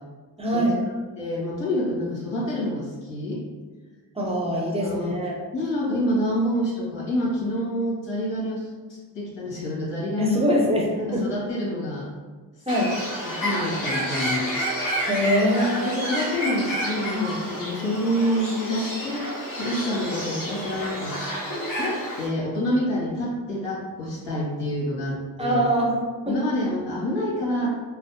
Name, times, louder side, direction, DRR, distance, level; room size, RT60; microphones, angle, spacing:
voice 1, 0.4-0.8 4.1-5.3 10.2-11.3 12.7-12.9 15.0-16.1 17.1-17.3 25.4-26.4 27.6-27.7, equal, 10° right, -3 dB, 0.9 m, -23 dB
voice 2, 1.2-3.4 4.7-5.2 5.5-8.6 8.9-10.4 11.0-12.1 13.2-14.5 15.8-19.3 19.6-21.2 21.8-25.6 26.2-27.7, left 1 dB, 60° left, -5 dB, 1.4 m, -27 dB
Bird, 12.7-22.3, equal, 40° left, 1.2 m, -30 dB
3.2 x 2.1 x 2.8 m, 1.3 s
hypercardioid pair, 45°, 49 cm